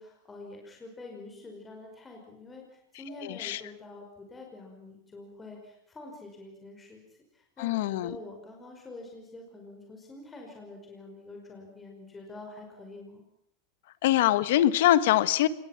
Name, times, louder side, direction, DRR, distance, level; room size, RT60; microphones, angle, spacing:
voice 1, 0.0-7.0 7.3-13.2, left 2 dB, 15° left, 1 dB, 5.3 m, -46 dB
voice 2, 3.2-3.6 7.6-8.2 14.0-15.5, left 13 dB, 75° left, 15 dB, 1.3 m, -23 dB
26.5 x 21.5 x 5.9 m, 0.76 s
supercardioid pair, 125°, 0 cm